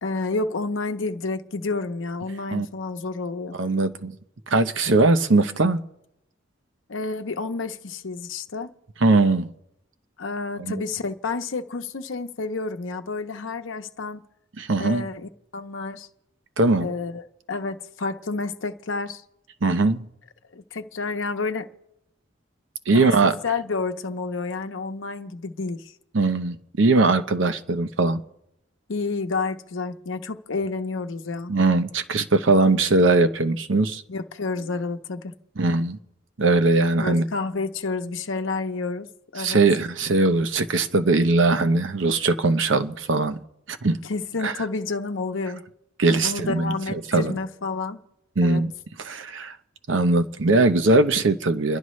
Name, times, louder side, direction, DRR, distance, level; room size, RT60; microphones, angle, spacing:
voice 1, 0.0-3.6 6.9-8.7 10.2-14.2 14.8-16.1 16.8-17.2 17.5-19.2 20.5-21.7 22.9-25.9 28.9-31.5 34.1-35.3 37.0-39.1 39.3-39.6 44.0-45.6 46.2-48.0 48.4-48.6, left 3 dB, 85° left, 0.8 m, -30 dB
voice 2, 3.5-4.2 4.5-5.8 9.0-9.5 10.6-10.8 14.6-15.1 16.6-16.9 19.6-20.0 22.9-23.3 26.1-28.2 31.5-34.0 35.6-36.0 36.4-37.3 39.4-43.4 43.7-44.0 44.4-44.5 46.0-47.4 48.4-48.7 49.0-49.6 49.9-51.8, right 3 dB, 70° right, 0.8 m, -20 dB
29.5 x 11.0 x 3.2 m
head